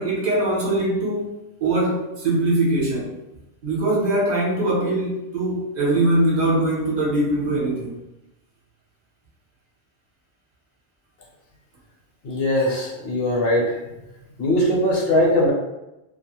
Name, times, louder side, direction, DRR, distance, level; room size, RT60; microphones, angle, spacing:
voice 1, 0.0-3.1 3.6-7.9, right 1 dB, 45° right, -4 dB, 0.8 m, -22 dB
voice 2, 12.2-13.8 14.4-15.5, left 1 dB, 65° left, -2 dB, 0.9 m, -20 dB
2.2 x 2.1 x 2.9 m, 0.94 s
omnidirectional pair, 1.1 m